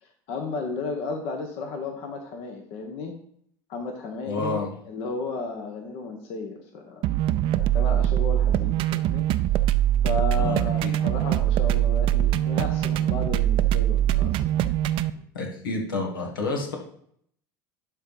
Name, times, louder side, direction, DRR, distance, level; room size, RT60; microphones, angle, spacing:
voice 1, 0.0-3.1 3.7-4.6 4.8-7.0 7.5-9.2 10.0-14.4, left 4 dB, 60° left, 3 dB, 1.3 m, -33 dB
voice 2, 4.3-4.7 10.4-11.0 15.3-16.8, left 3 dB, 90° left, 0 dB, 2.0 m, -29 dB
sound 1, 7.0-15.1, right 12 dB, 55° right, 0.5 m, -23 dB
11.5 x 3.9 x 4.9 m, 0.66 s
hypercardioid pair, 85°, 11 cm